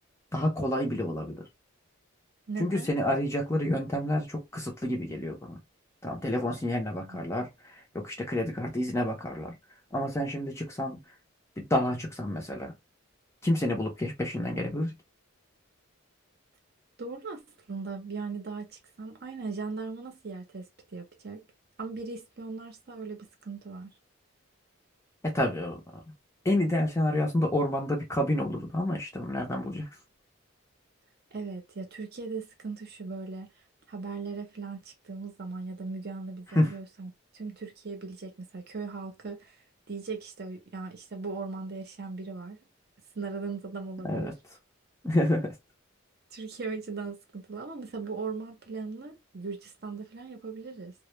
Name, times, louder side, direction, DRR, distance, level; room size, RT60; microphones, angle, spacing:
voice 1, 0.3-1.5 2.6-5.6 6.0-9.5 9.9-11.0 11.6-12.7 13.4-14.9 25.2-25.8 26.4-29.9 36.6-36.7 44.0-44.3 45.0-45.5, left 1 dB, 15° left, 0.5 m, -29 dB
voice 2, 2.5-2.9 7.0-7.2 17.0-17.4 17.7-20.7 20.9-21.5 21.8-23.9 31.3-33.5 33.9-39.6 39.9-42.6 43.1-44.3 46.3-50.9, right 4 dB, 50° right, 0.6 m, -38 dB
2.1 x 2.1 x 3.0 m
head